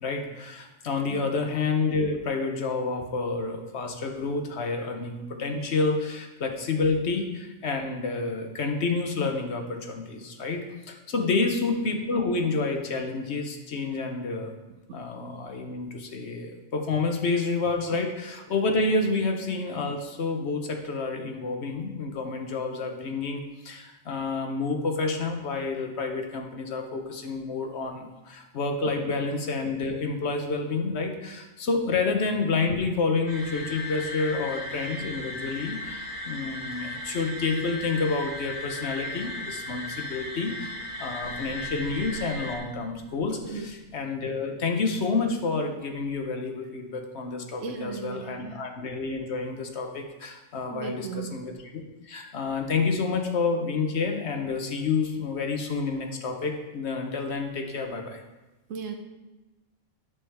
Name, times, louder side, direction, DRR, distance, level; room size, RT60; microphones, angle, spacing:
voice 1, 0.0-14.5 14.9-40.7 41.0-58.2, left 4 dB, 60° left, 4 dB, 1.1 m, -29 dB
voice 2, 11.2-11.5 14.9-15.0 43.4-43.7 47.6-48.6 50.7-51.3 58.7-59.0, right 5 dB, 80° right, 5 dB, 1.2 m, -36 dB
sound 1, 33.3-42.6, left 2 dB, 35° right, 1.5 m, -36 dB
sound 2, 41.2-44.3, right 1 dB, 75° left, 1.3 m, -47 dB
8.7 x 7.1 x 3.4 m, 1.0 s
omnidirectional pair, 1.3 m